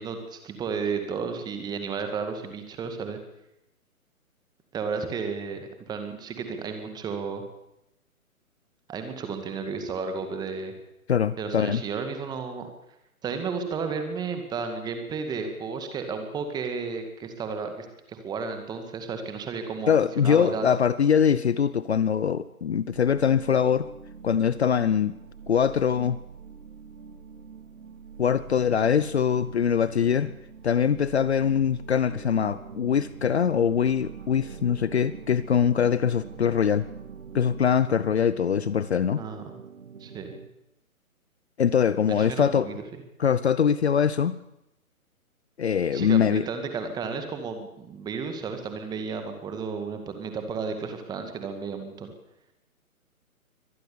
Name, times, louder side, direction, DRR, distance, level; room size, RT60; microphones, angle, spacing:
voice 1, 0.0-3.2 4.7-7.4 8.9-10.7 11.4-12.7 13.2-20.7 39.2-39.5 40.0-40.3 42.1-42.8 45.9-52.1, right 5 dB, 10° right, 7 dB, 2.0 m, -33 dB
voice 2, 11.1-11.8 19.9-23.9 24.2-25.1 25.5-26.2 28.2-30.3 30.6-36.9 37.3-39.2 41.6-42.7 43.2-44.4 45.6-46.5, left 7 dB, 45° left, 16 dB, 0.9 m, -23 dB
sound 1, 22.9-37.7, right 6 dB, 75° right, 6.0 m, -45 dB
sound 2, 32.1-40.5, right 6 dB, 55° right, 2.8 m, -45 dB
24.5 x 18.5 x 7.1 m, 0.87 s
figure-of-eight pair, 140°, 44 cm